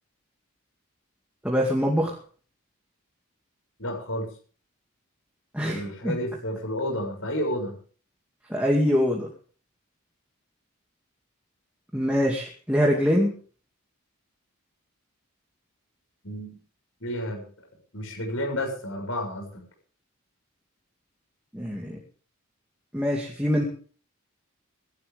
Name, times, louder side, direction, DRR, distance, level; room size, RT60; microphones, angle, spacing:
voice 1, 1.4-2.2 5.5-6.1 8.5-9.3 11.9-13.3 21.5-22.0 22.9-23.6, equal, 5° right, -2 dB, 2.5 m, -24 dB
voice 2, 3.8-4.3 5.7-7.8 16.2-16.6 17.0-17.5 17.9-19.6, equal, 70° left, 1 dB, 7.1 m, -31 dB
25.0 x 12.0 x 3.6 m, 0.41 s
head